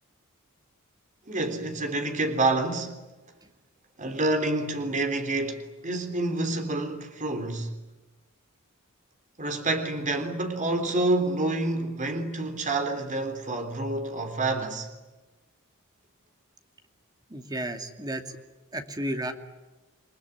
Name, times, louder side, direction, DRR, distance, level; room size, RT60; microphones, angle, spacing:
voice 1, 1.3-3.0 4.0-7.7 9.4-14.9, right 2 dB, 35° right, 3.6 m, -28 dB
voice 2, 17.3-18.2 18.7-19.3, right 1 dB, 20° right, 2.5 m, -32 dB
29.5 x 21.0 x 9.6 m
head